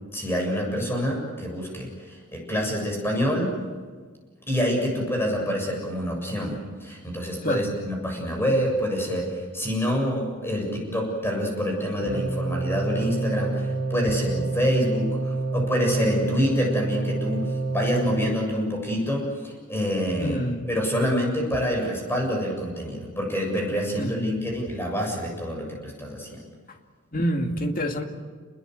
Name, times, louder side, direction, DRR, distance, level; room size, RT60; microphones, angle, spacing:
voice 1, 0.1-3.5 4.5-20.4 20.7-26.3, equal, 10° left, 0 dB, 7.3 m, -27 dB
sound 1, 12.0-18.3, right 3 dB, 45° right, 5.6 m, -28 dB
voice 2, 20.2-20.7 24.0-24.3 27.1-28.0, equal, 40° left, 4 dB, 2.4 m, -27 dB
29.0 x 21.5 x 8.0 m, 1.5 s
head